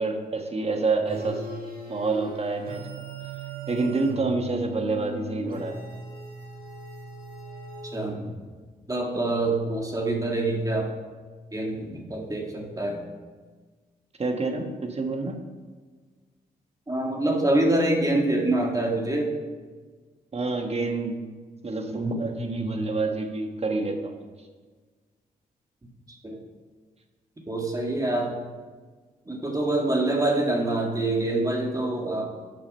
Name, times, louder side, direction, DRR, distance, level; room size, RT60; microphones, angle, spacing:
voice 1, 0.0-1.4 1.9-2.8 3.7-5.8 14.2-15.4 20.3-21.2 21.6-24.2, right 3 dB, 40° right, 4 dB, 1.4 m, -27 dB
sound 1, 1.1-8.5, right 2 dB, 65° right, 1.7 m, -38 dB
voice 2, 8.9-10.9 11.5-13.1 16.9-19.3 26.2-26.4 27.5-28.4 29.3-32.2, right 2 dB, 20° right, 0 dB, 1.9 m, -25 dB
7.9 x 6.2 x 5.4 m, 1.4 s
supercardioid pair, 55°, 16 cm